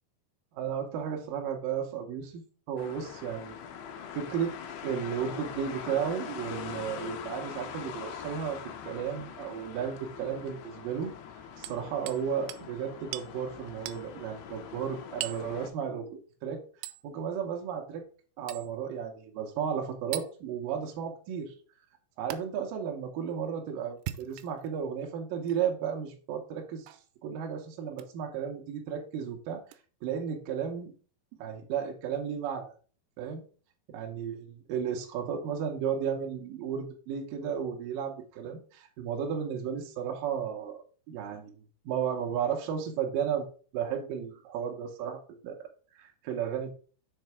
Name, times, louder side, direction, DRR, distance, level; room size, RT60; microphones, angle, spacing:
voice 1, 0.5-2.4 2.7-3.6 4.1-4.5 4.8-11.1 11.6-16.6 17.0-18.0 18.4-21.5 22.2-26.9 27.2-29.6 30.0-30.9 31.4-32.7 33.2-33.4 33.9-34.4 34.7-41.5 41.9-43.5 43.7-45.6 45.9-46.8, right 8 dB, 70° right, 1 dB, 2.2 m, -34 dB
sound 1, 2.8-15.7, left 7 dB, 80° left, 2.7 m, -43 dB
Hammer, 11.6-12.2 12.5-12.7 13.1-13.3 13.9-14.0 15.2-15.5 16.8-17.0 18.5-18.7 20.1-20.3 22.3-22.4 23.9-24.7 25.4-25.6 26.9-27.1 27.9-28.1 29.7-29.8, right 14 dB, 90° right, 2.8 m, -39 dB
6.5 x 4.0 x 4.7 m, 0.39 s
omnidirectional pair, 5.0 m